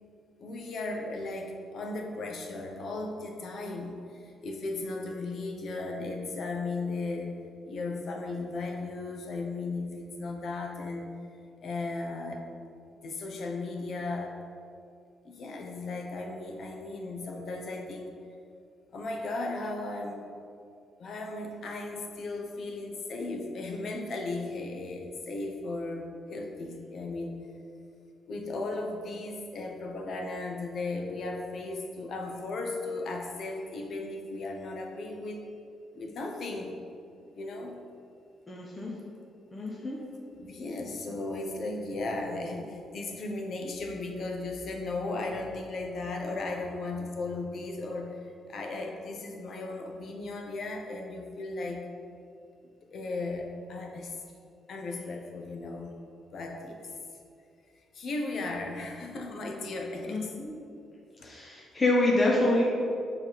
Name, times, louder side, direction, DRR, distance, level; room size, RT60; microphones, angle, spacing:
voice 1, 0.4-7.4 7.6-11.2 11.6-12.5 13.0-14.4 15.2-18.1 18.9-20.2 21.0-27.4 28.3-35.4 35.9-36.8 37.3-37.8 40.4-51.8 52.9-54.2 54.7-55.9 56.3-56.9 57.9-60.3 61.2-61.3, left 2 dB, 60° left, 2 dB, 0.9 m, -36 dB
voice 2, 38.5-38.9 39.5-40.0 60.1-60.5 61.2-62.6, left 2 dB, 25° left, -3 dB, 1.0 m, -26 dB
7.1 x 3.5 x 5.7 m, 2.5 s
cardioid pair, 90°, 0 cm